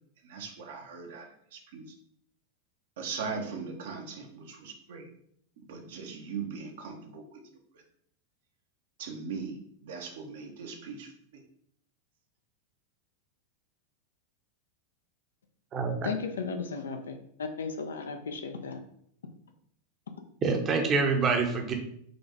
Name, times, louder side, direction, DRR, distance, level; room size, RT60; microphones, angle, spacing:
voice 1, 0.3-1.3 1.5-1.8 3.0-5.1 5.6-7.2 9.0-11.1, right 5 dB, 55° right, 3 dB, 0.8 m, -39 dB
voice 2, 16.0-18.8, left 5 dB, 65° left, 6 dB, 0.5 m, -35 dB
voice 3, 20.4-21.7, right 4 dB, 25° right, 4 dB, 0.8 m, -26 dB
4.0 x 3.4 x 3.4 m, 0.68 s
figure-of-eight pair, 90°, 0 cm